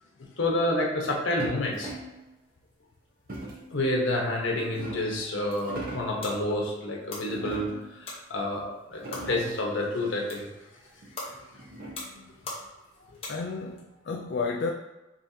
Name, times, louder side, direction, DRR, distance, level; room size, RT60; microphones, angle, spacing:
voice 1, 0.4-1.9 3.7-10.5, left 1 dB, 85° left, -1 dB, 1.1 m, -29 dB
sound 1, 1.4-2.2 3.3-3.7 4.4-5.2 5.6-6.2 7.3-8.0 8.6-8.7 8.9-9.6 11.0-12.2, right 1 dB, 50° right, 1.0 m, -40 dB
sound 2, 5.2-13.8, left 2 dB, 30° left, 1.1 m, -44 dB
voice 2, 12.0-12.3 13.3-14.7, left 4 dB, 65° left, 1 dB, 0.4 m, -32 dB
5.4 x 3.4 x 2.8 m, 1.0 s
head